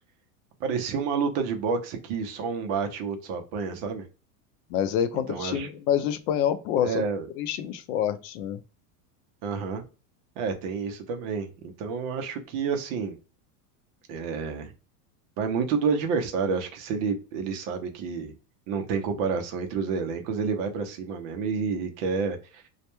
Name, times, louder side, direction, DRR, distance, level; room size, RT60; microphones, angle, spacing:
voice 1, 0.6-4.1 5.3-5.7 6.8-7.3 9.4-9.8 10.4-11.5 11.8-13.2 14.1-14.7 15.4-18.3 18.7-22.6, right 5 dB, 40° right, 0.4 m, -29 dB
voice 2, 4.7-7.0 7.4-8.6, left 9 dB, 70° left, 0.5 m, -27 dB
2.2 x 2.1 x 2.9 m
supercardioid pair, 150°, 48 cm